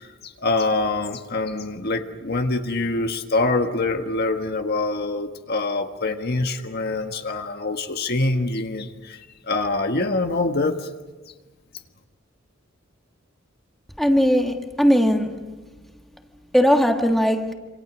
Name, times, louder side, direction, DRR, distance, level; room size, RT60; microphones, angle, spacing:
voice 1, 0.0-9.2 9.5-10.9, left 2 dB, 50° left, 1.5 m, -25 dB
voice 2, 14.0-15.4 16.5-17.5, equal, ahead, 1.6 m, -19 dB
27.0 x 26.5 x 6.2 m
head